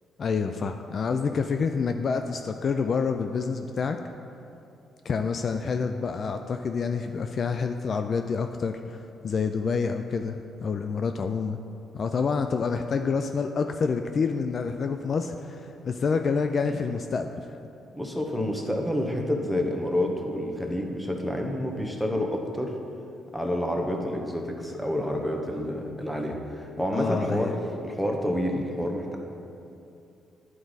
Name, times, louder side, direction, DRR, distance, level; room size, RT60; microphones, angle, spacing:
voice 1, 0.2-4.0 5.0-11.6 11.9-17.4 26.9-27.5, left 5 dB, 50° left, 6 dB, 0.3 m, -28 dB
voice 2, 17.9-22.7 23.3-29.2, left 1 dB, 5° left, 1 dB, 1.0 m, -29 dB
11.0 x 4.6 x 4.0 m, 2.7 s
cardioid pair, 90°, 0 cm